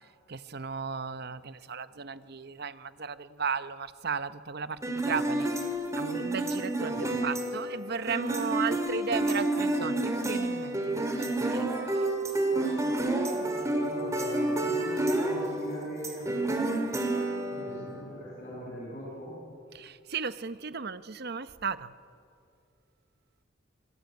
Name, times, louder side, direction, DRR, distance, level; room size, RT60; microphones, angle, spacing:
voice 1, 0.3-5.5 6.0-12.0 19.7-21.9, right 5 dB, 55° right, 14 dB, 0.8 m, -35 dB
sound 1, 4.8-18.0, right 2 dB, 15° right, 2.7 m, -30 dB
voice 2, 12.5-16.5 17.5-19.4, equal, 40° left, -6 dB, 7.8 m, -42 dB
27.0 x 20.5 x 9.4 m, 2.5 s
head